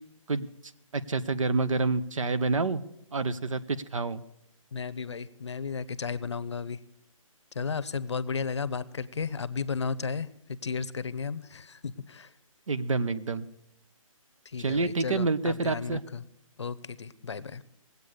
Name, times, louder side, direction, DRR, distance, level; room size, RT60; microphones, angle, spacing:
voice 1, 0.9-2.8 3.1-4.2 12.7-13.4 14.6-16.0, right 3 dB, 70° right, 14 dB, 1.0 m, -28 dB
voice 2, 4.7-6.8 7.5-12.3 14.4-16.2 16.6-17.6, left 5 dB, 55° left, 15 dB, 0.7 m, -34 dB
19.5 x 8.3 x 6.6 m, 0.80 s
hypercardioid pair, 180°, 18 cm